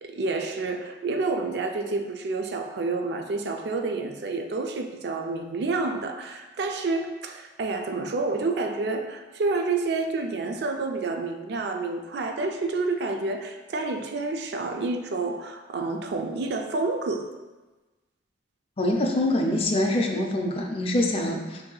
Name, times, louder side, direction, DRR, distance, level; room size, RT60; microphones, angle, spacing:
voice 1, 0.0-17.3, right 3 dB, 60° right, 4 dB, 0.4 m, -29 dB
voice 2, 18.8-21.6, left 1 dB, 30° left, 2 dB, 0.4 m, -24 dB
5.3 x 2.7 x 2.3 m, 1.2 s
head